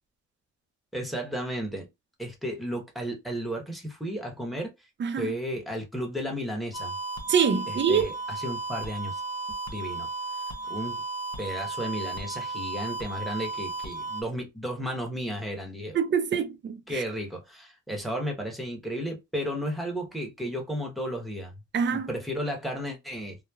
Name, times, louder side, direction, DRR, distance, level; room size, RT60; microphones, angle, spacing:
voice 1, 0.9-1.9 2.2-4.7 5.2-6.9 7.9-9.2 9.7-10.1 10.7-11.0 11.4-16.0 16.9-21.5 21.9-23.4, equal, ahead, 1.1 m, -33 dB
voice 2, 5.0-5.3 7.3-8.1 15.9-17.0 21.7-22.1, right 6 dB, 40° right, 0.6 m, -25 dB
sound 1, 6.7-14.2, right 3 dB, 60° left, 0.9 m, -34 dB
3.0 x 2.2 x 2.3 m
cardioid pair, 90°, 30 cm